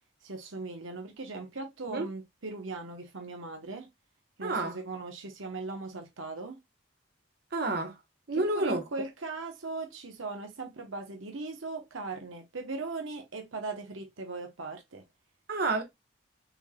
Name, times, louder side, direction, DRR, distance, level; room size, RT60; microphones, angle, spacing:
voice 1, 0.2-3.9 4.4-6.6 8.3-15.0, right 3 dB, 85° right, 1.1 m, -39 dB
voice 2, 4.4-4.8 7.5-8.0 8.3-8.8 15.5-15.8, right 2 dB, 50° right, 1.2 m, -29 dB
6.1 x 3.3 x 2.3 m
head